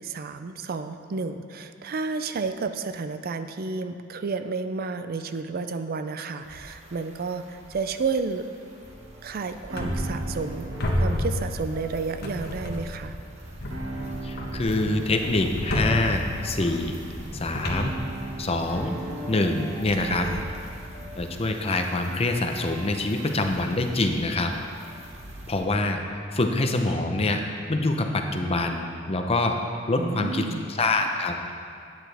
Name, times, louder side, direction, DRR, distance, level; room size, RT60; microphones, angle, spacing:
voice 1, 0.0-8.5 9.2-13.1 19.9-20.5 30.0-30.7, right 4 dB, 50° right, 9 dB, 0.4 m, -31 dB
sound 1, 6.4-25.6, equal, 35° right, 1.4 m, -44 dB
sound 2, 8.8-25.1, right 1 dB, 85° right, 1.5 m, -40 dB
sound 3, 9.8-10.5 10.8-11.9 12.2-13.1 13.6-18.7, equal, 55° left, 1.3 m, -31 dB
voice 2, 14.2-16.9 17.4-17.9 18.4-18.9 19.3-20.3 21.2-24.5 25.5-26.0 26.3-27.4 27.7-29.6 29.9-31.4, left 2 dB, 30° left, 4 dB, 0.7 m, -25 dB
12.0 x 9.3 x 3.4 m, 2.3 s
head